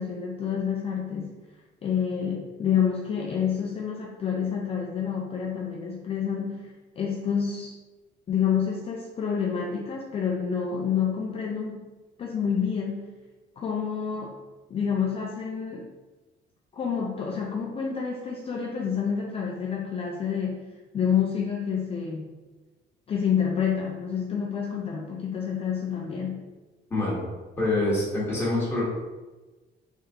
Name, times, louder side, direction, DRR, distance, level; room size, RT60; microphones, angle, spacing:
voice 1, 0.0-1.4 1.8-7.7 8.3-11.8 12.2-13.1 13.6-14.4 14.7-15.9 16.7-20.6 20.9-22.3 23.1-26.5, left 7 dB, 30° left, -1 dB, 0.4 m, -28 dB
voice 2, 26.9-27.3 27.6-28.8, left 2 dB, 10° left, -6 dB, 1.2 m, -25 dB
3.5 x 3.4 x 2.7 m, 1.2 s
cardioid pair, 150°, 19 cm